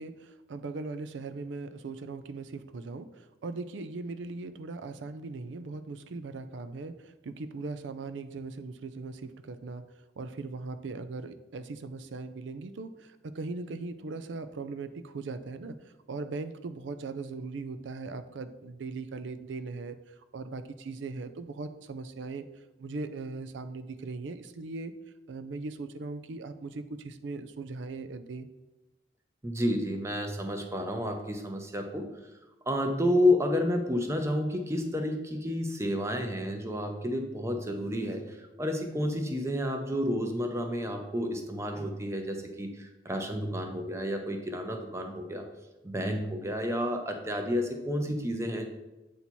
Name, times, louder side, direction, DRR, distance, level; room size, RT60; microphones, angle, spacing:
voice 1, 0.0-9.8 10.2-15.8 16.1-20.0 20.3-22.4 22.8-24.9 25.3-28.5, right 3 dB, 85° right, 11 dB, 0.4 m, -39 dB
voice 2, 29.4-32.1 32.7-38.2 38.6-45.5 45.8-48.7, left 1 dB, 15° right, 4 dB, 0.6 m, -30 dB
8.2 x 2.8 x 4.4 m, 1.0 s
head